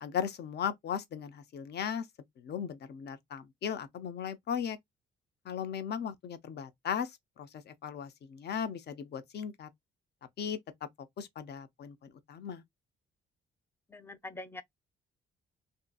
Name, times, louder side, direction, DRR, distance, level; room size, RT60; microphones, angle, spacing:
voice 1, 0.0-2.0 2.4-4.8 5.5-9.7 10.4-10.9 11.2-12.6, left 8 dB, 55° left, 0.6 m, -37 dB
voice 2, 13.9-14.6, left 2 dB, 10° left, 0.5 m, -44 dB
2.7 x 2.6 x 2.3 m
cardioid pair, 90°, 20 cm